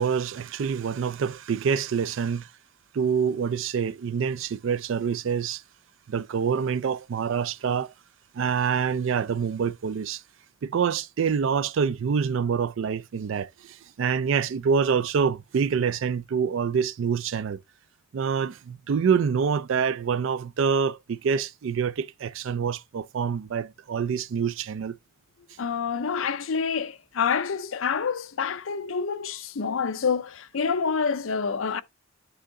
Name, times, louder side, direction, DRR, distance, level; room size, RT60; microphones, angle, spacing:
voice 1, 0.0-2.5 2.9-5.6 6.1-7.9 8.3-10.2 10.6-17.6 18.1-25.0, right 6 dB, 65° right, 0.3 m, -26 dB
voice 2, 25.6-31.8, left 6 dB, 75° left, 0.5 m, -27 dB
9.2 x 3.7 x 3.7 m
head